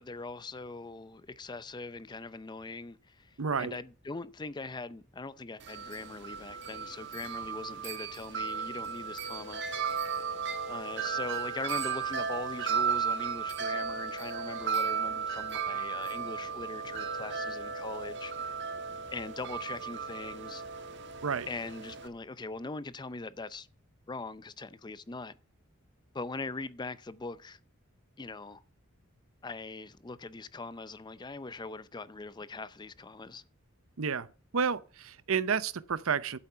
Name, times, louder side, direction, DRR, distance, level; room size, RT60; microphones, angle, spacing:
voice 1, 0.0-10.0 10.7-18.6 19.1-20.6 21.5-23.7 24.1-25.4 26.1-27.6 28.2-28.6 29.4-33.4, left 3 dB, 20° left, 0.5 m, -41 dB
voice 2, 3.4-3.8 21.2-21.5 34.0-34.3 34.5-36.4, right 6 dB, 75° right, 0.7 m, -30 dB
Wind chime, 5.6-22.1, right 6 dB, 55° right, 1.5 m, -35 dB
12.0 x 8.6 x 5.6 m
head